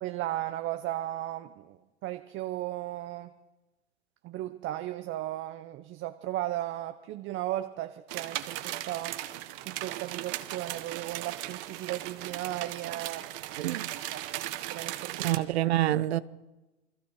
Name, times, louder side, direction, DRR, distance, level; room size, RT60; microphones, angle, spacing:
voice 1, 0.0-3.3 4.2-9.2 9.6-13.6 14.1-14.2 14.7-15.3, right 14 dB, 40° right, 0.9 m, -36 dB
sound 1, 8.1-15.4, right 15 dB, 60° right, 1.4 m, -37 dB
voice 2, 13.6-13.9 15.2-16.2, right 14 dB, 85° right, 0.8 m, -26 dB
28.5 x 21.5 x 4.8 m
hypercardioid pair, 115°, 31 cm